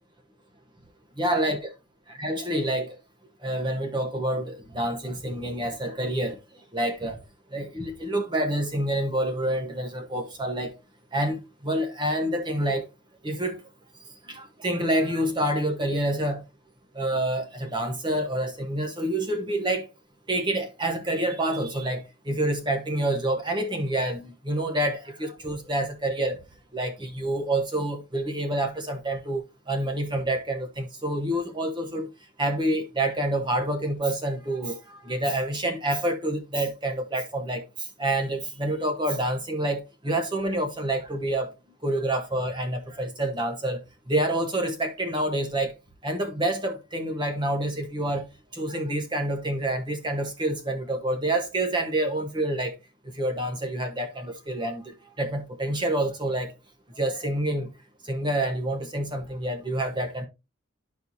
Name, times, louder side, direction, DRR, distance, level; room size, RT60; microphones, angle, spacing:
voice 1, 1.2-1.7 2.2-3.0 3.4-6.4 6.7-7.2 7.5-10.7 11.1-12.9 13.2-13.6 14.3-16.4 16.9-19.9 20.3-26.4 26.7-32.1 32.4-37.6 38.0-41.5 41.8-43.8 44.1-45.7 46.0-48.3 48.5-52.7 53.1-56.5 57.0-57.7 58.1-60.3, right 1 dB, 25° right, 1.0 m, -27 dB
12.5 x 4.5 x 2.7 m
head